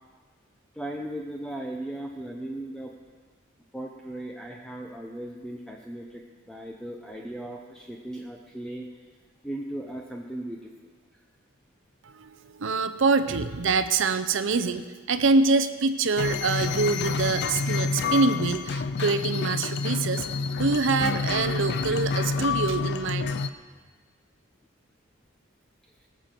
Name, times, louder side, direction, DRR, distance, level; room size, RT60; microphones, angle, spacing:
voice 1, 0.7-2.9 3.7-9.1 9.4-10.7 11.1-11.2 26.0-26.1, right 1 dB, 5° left, 0 dB, 0.7 m, -37 dB
voice 2, 12.0-20.3 20.5-23.3, right 4 dB, 65° right, 11 dB, 0.6 m, -25 dB
sound 1, 16.2-23.5, left 4 dB, 55° left, 0.5 m, -28 dB
19.0 x 6.9 x 6.0 m, 1.5 s
head